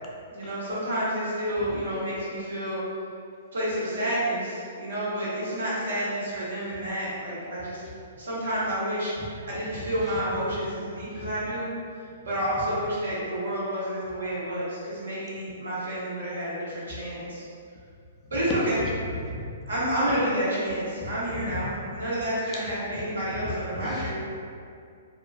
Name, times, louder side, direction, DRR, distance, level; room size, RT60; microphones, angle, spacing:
voice 1, 0.3-2.8 3.5-7.8 8.2-11.7 12.2-17.4 18.3-18.8 19.7-24.1, equal, 80° right, -8 dB, 1.0 m, -29 dB
voice 2, 18.7-19.5 21.0-21.6 22.5-22.7 23.4-24.1, left 1 dB, 25° left, -3 dB, 0.4 m, -36 dB
2.4 x 2.2 x 2.4 m, 2.4 s
hypercardioid pair, 125°, 0 cm